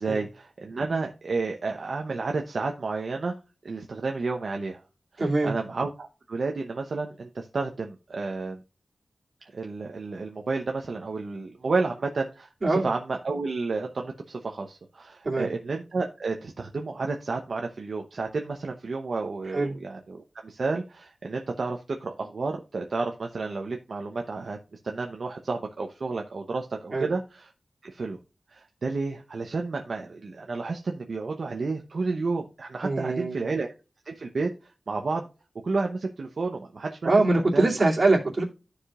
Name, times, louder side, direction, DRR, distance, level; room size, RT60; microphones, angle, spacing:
voice 1, 0.0-3.3 3.6-4.8 5.1-8.6 9.4-24.6 24.8-27.5 27.8-28.2 28.5-33.7 34.0-35.3 35.6-37.1 37.5-37.7, right 3 dB, 70° right, 0.8 m, -31 dB
voice 2, 5.2-5.5 12.6-12.9 15.2-15.5 19.5-19.8 26.9-27.1 32.8-33.5 37.0-38.4, right 2 dB, 45° right, 2.6 m, -23 dB
14.0 x 4.9 x 2.4 m
wide cardioid pair, 85°, 0 cm